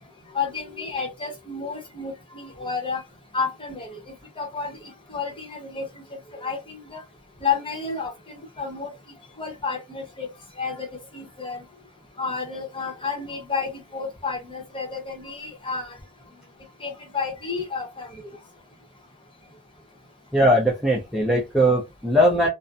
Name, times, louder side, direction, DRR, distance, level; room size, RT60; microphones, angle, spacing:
voice 1, 0.3-3.0 3.3-4.0 4.4-4.8 5.1-5.9 6.4-7.0 7.4-8.9 9.4-10.3 10.6-10.9 11.1-11.6 12.2-15.9 16.8-18.2, left 5 dB, 25° left, 0.9 m, -30 dB
voice 2, 20.3-22.5, equal, ahead, 0.6 m, -20 dB
2.5 x 2.2 x 2.5 m
head